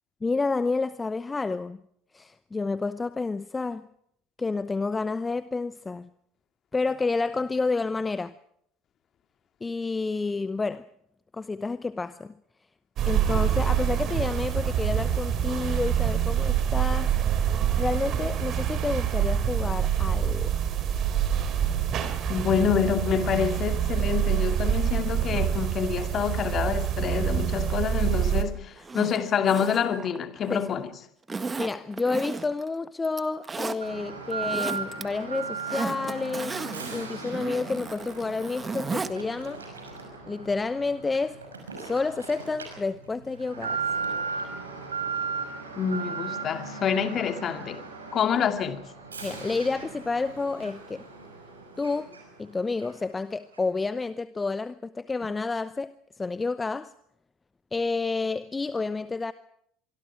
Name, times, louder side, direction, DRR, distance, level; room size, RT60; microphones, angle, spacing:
voice 1, 0.2-1.8 2.1-3.9 4.4-6.1 6.7-8.3 9.6-10.9 11.3-12.3 13.1-17.1 17.8-20.5 30.5-30.7 31.6-36.6 36.9-39.6 40.3-41.4 41.8-43.8 49.2-51.0 51.8-56.9 57.7-59.3, left 3 dB, 20° left, 0.8 m, -30 dB
sound 1, 13.0-28.4, right 9 dB, 45° right, 3.6 m, -26 dB
voice 2, 22.3-30.9 45.8-47.8 48.1-48.8, left 7 dB, 40° left, 2.5 m, -27 dB
Zipper (clothing), 28.8-30.7 31.3-32.7 33.0-33.8 34.3-35.0 35.3-39.1 39.4-39.5, right 4 dB, 20° right, 1.7 m, -35 dB
Alarm, 33.8-52.5 52.8-52.9 53.5-53.6, right 5 dB, 85° right, 5.8 m, -37 dB
25.0 x 24.0 x 4.9 m
figure-of-eight pair, 70°, 0 cm